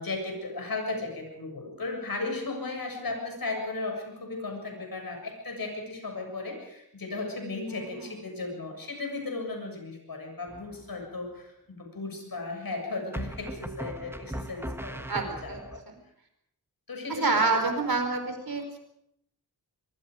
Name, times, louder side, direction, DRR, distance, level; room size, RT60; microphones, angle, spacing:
voice 1, 0.0-15.9 16.9-17.4 17.7-17.8, left 3 dB, 65° left, 3 dB, 7.2 m, -36 dB
voice 2, 7.7-8.1 15.1-15.6 17.1-18.8, right 3 dB, 70° right, 5 dB, 4.5 m, -28 dB
sound 1, 10.5-11.0 13.1-15.8, right 1 dB, 5° right, 1.6 m, -38 dB
24.0 x 23.0 x 5.1 m, 0.76 s
wide cardioid pair, 85°, 37 cm